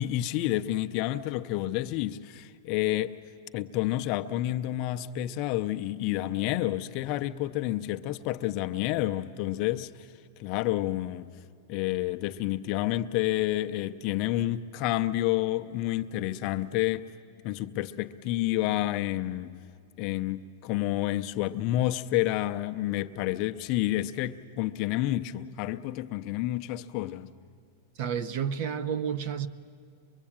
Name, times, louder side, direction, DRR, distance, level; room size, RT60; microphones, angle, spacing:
voice 1, 0.0-3.1 3.5-10.1 10.4-11.3 11.7-17.1 17.4-19.6 20.0-27.3, left 15 dB, 30° left, 0.5 m, -29 dB
voice 2, 28.0-29.5, right 7 dB, 35° right, 0.7 m, -30 dB
24.0 x 23.0 x 8.7 m
supercardioid pair, 180°, 0 cm